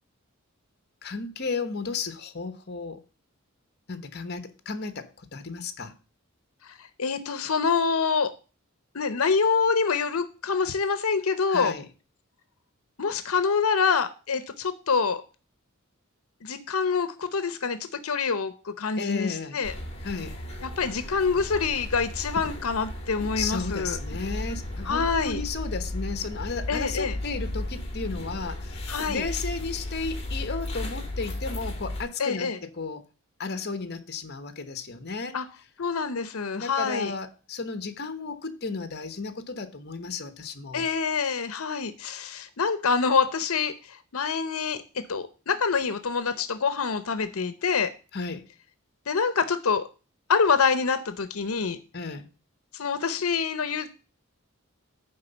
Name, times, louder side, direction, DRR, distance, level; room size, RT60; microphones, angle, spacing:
voice 1, 1.0-3.0 3.9-5.9 11.5-11.9 19.0-19.6 20.0-20.4 23.3-33.0 33.4-35.4 36.5-40.9 48.1-48.5 51.9-52.3, left 4 dB, 50° left, 1.1 m, -34 dB
voice 2, 6.6-8.3 8.9-11.7 13.0-15.2 16.4-17.8 18.0-19.7 20.6-24.0 24.9-25.4 26.7-27.2 28.9-29.2 32.2-32.6 35.3-35.4 35.8-37.1 40.7-44.8 45.1-47.9 49.1-49.8 50.3-51.8 52.7-53.9, left 5 dB, 85° left, 0.8 m, -26 dB
sound 1, 19.6-32.0, left 1 dB, 30° left, 2.3 m, -34 dB
9.5 x 3.7 x 6.9 m
head